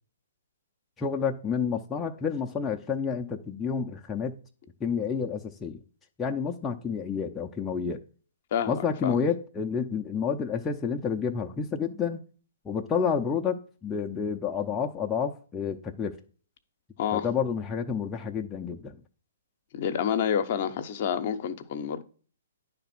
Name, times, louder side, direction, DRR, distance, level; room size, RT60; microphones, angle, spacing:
voice 1, 1.0-4.3 4.8-5.8 6.2-8.0 8.7-12.2 12.6-16.2 17.1-19.0, left 6 dB, 15° left, 0.6 m, -29 dB
voice 2, 8.5-9.1 17.0-17.3 19.7-22.0, left 8 dB, 50° left, 0.8 m, -28 dB
10.0 x 3.4 x 5.9 m
hypercardioid pair, 130°, 0 cm